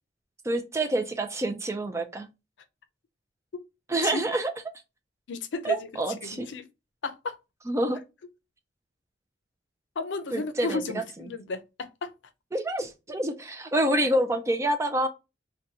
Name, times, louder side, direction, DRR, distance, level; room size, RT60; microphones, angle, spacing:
voice 1, 0.5-2.3 3.9-4.5 5.6-6.5 7.7-8.0 10.3-11.0 12.5-15.1, right 1 dB, 15° right, 0.4 m, -27 dB
voice 2, 5.3-5.9 6.2-6.6 7.0-7.4 10.0-12.1, left 3 dB, 75° left, 0.5 m, -33 dB
3.8 x 2.2 x 2.7 m
head